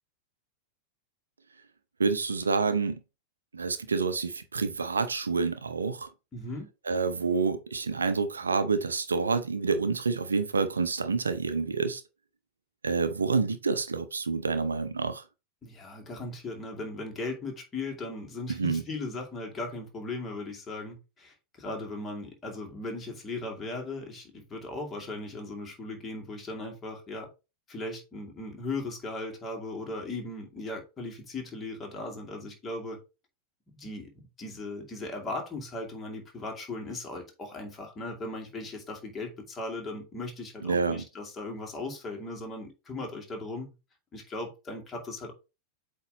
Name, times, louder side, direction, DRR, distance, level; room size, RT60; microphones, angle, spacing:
voice 1, 2.0-3.0 3.5-6.1 6.9-12.0 12.8-15.2 18.5-18.8 40.6-41.0, right 4 dB, 75° right, 0.6 m, -28 dB
voice 2, 6.3-6.7 15.6-27.3 27.7-33.0 33.7-43.7 44.1-45.3, left 2 dB, 20° left, 2.3 m, -38 dB
8.1 x 3.1 x 4.0 m
figure-of-eight pair, 90°, 0 cm